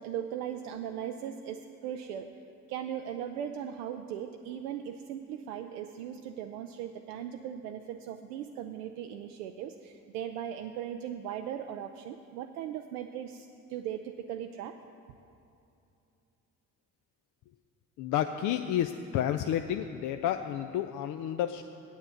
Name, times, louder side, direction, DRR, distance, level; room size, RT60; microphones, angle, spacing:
voice 1, 0.0-2.3 2.7-14.7, right 9 dB, 70° right, 5 dB, 0.5 m, -38 dB
voice 2, 18.0-21.6, left 10 dB, 45° left, 7 dB, 0.4 m, -30 dB
8.5 x 7.2 x 7.8 m, 2.7 s
figure-of-eight pair, 40°, 45 cm